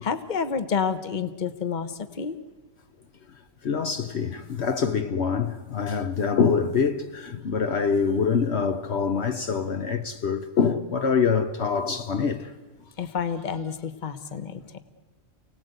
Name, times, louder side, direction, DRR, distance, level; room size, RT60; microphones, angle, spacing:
voice 1, 0.0-2.4 13.0-14.6, left 6 dB, 40° left, 1.2 m, -29 dB
voice 2, 3.6-12.5, left 6 dB, 60° left, 1.2 m, -25 dB
29.0 x 18.0 x 8.1 m
omnidirectional pair, 1.3 m